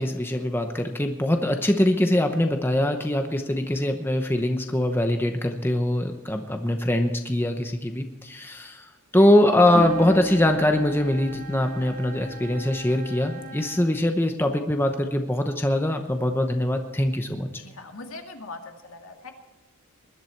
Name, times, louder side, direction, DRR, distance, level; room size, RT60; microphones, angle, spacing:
voice 1, 0.0-8.9 9.1-17.6, left 1 dB, 10° left, 5 dB, 0.8 m, -23 dB
sound 1, 9.6-13.8, right 1 dB, 80° right, 5.3 m, -41 dB
sound 2, 9.7-13.0, equal, 30° left, 1.1 m, -35 dB
voice 2, 17.5-19.3, left 3 dB, 70° left, 4 dB, 2.0 m, -41 dB
20.5 x 11.5 x 4.5 m, 1.0 s
head